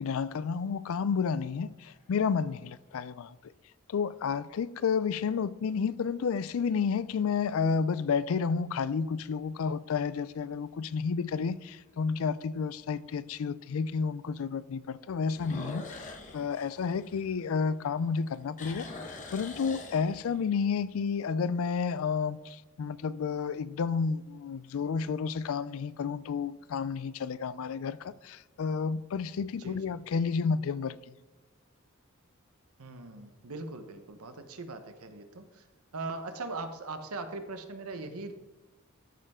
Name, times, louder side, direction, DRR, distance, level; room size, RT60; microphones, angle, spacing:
voice 1, 0.0-3.3 3.9-18.9 19.3-31.0, left 5 dB, 70° left, 0.4 m, -31 dB
sound 1, 1.7-2.3 3.0-3.1 8.3-8.8 9.3-9.4 9.9-10.0 10.3-10.4 11.9-12.0 15.3-17.8 18.2-20.5, left 2 dB, 35° left, 1.1 m, -44 dB
voice 2, 32.8-35.6 35.9-38.3, right 3 dB, 85° right, 1.0 m, -40 dB
13.5 x 5.4 x 3.6 m
head